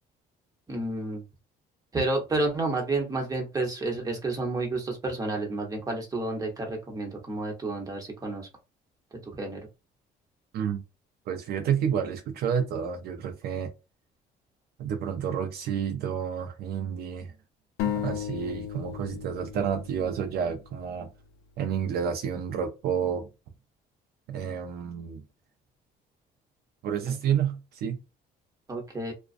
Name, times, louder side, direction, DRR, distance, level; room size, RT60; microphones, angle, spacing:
voice 1, 0.7-1.2 1.9-8.5 9.3-9.6 28.7-29.1, right 2 dB, 20° right, 1.0 m, -30 dB
voice 2, 11.3-13.7 14.8-17.3 17.8-21.1 21.6-23.3 24.3-25.2 26.8-28.0, right 8 dB, 70° right, 0.5 m, -30 dB
sound 1, 17.8-21.4, left 10 dB, 75° left, 0.4 m, -35 dB
2.4 x 2.2 x 2.5 m
cardioid pair, 110°, 17 cm